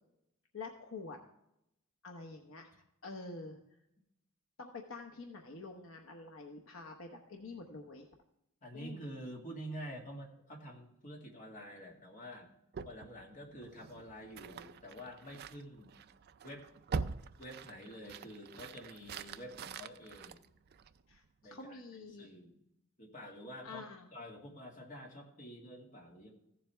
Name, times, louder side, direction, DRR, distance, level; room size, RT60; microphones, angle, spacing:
voice 1, 0.5-1.2 2.0-2.7 3.0-3.6 4.6-8.1 8.7-9.0 21.1-22.3 23.6-24.1, left 3 dB, 65° left, 3 dB, 0.9 m, -47 dB
voice 2, 8.6-12.5 12.8-15.9 16.4-16.9 17.4-20.4 21.4-22.6 23.0-23.8 24.1-26.3, equal, 35° left, -1 dB, 2.0 m, -48 dB
sound 1, 12.7-21.2, right 5 dB, 45° right, 0.4 m, -45 dB
15.0 x 7.4 x 3.4 m, 0.83 s
head